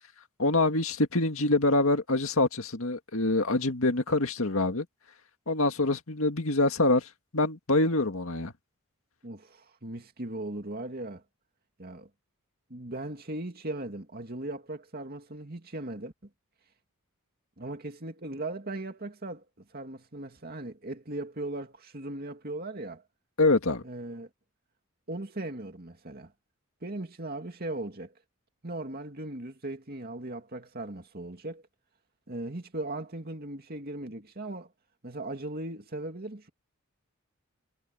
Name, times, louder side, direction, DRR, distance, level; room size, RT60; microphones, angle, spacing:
voice 1, 0.4-4.9 5.5-7.1 7.3-8.5 23.4-23.8, left 2 dB, 70° left, 2.0 m, -25 dB
voice 2, 9.2-11.2 11.8-12.1 12.7-16.1 17.6-23.0 23.8-24.3 25.1-26.3 26.8-28.1 28.6-31.6 32.3-34.7 35.0-36.5, right 2 dB, 45° right, 2.5 m, -38 dB
head